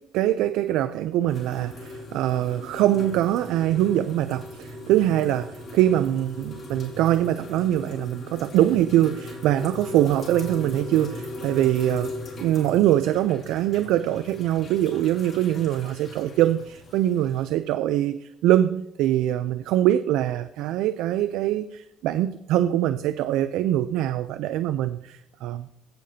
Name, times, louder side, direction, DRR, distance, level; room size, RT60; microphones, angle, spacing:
voice 1, 0.1-25.7, right 12 dB, 85° right, 0.4 m, -23 dB
sound 1, 1.3-17.4, left 2 dB, 40° left, 4.3 m, -39 dB
16.0 x 6.7 x 2.8 m
cardioid pair, 140°, 0 cm